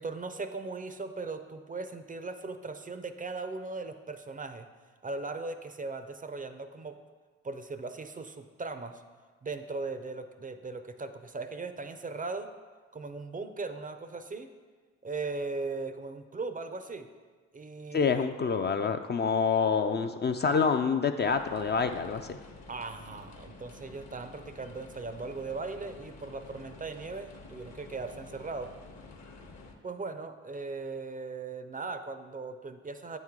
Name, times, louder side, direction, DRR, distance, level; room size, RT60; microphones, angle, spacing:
voice 1, 0.0-4.7 5.0-7.0 7.4-9.0 9.4-12.5 12.9-14.5 15.0-17.1 17.5-18.3 22.7-28.7 29.8-33.2, right 3 dB, 25° right, 9 dB, 0.4 m, -38 dB
voice 2, 17.9-22.4, left 5 dB, 35° left, 7 dB, 0.4 m, -27 dB
sound 1, 21.3-29.7, left 3 dB, 55° left, 0.9 m, -50 dB
8.8 x 3.1 x 3.7 m, 1.5 s
hypercardioid pair, 40°, 33 cm